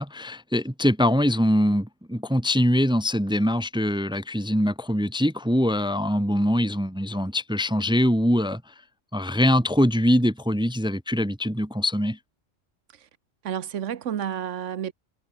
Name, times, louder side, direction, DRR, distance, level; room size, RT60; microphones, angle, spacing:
voice 1, 0.0-8.7 9.1-12.2, equal, 5° right, 1.0 m, -23 dB
voice 2, 13.4-14.9, right 9 dB, 90° right, 1.3 m, -30 dB
omnidirectional pair, 1.2 m